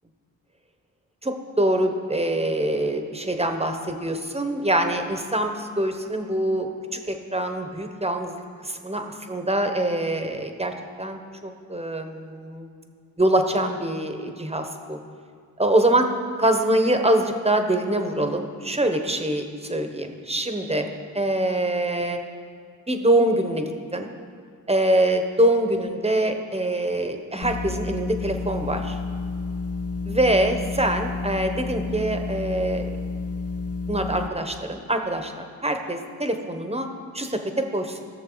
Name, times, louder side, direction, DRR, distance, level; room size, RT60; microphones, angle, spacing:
voice 1, 1.2-12.7 13.2-15.0 15.6-16.1 16.4-20.9 21.1-22.2 22.9-24.1 24.7-29.0 30.0-32.9 33.9-36.9 37.1-38.0, right 1 dB, 15° right, 5 dB, 1.1 m, -24 dB
sound 1, 27.4-34.3, left 4 dB, 40° left, 0.7 m, -30 dB
15.5 x 6.7 x 4.0 m, 2.2 s
cardioid pair, 65°, 37 cm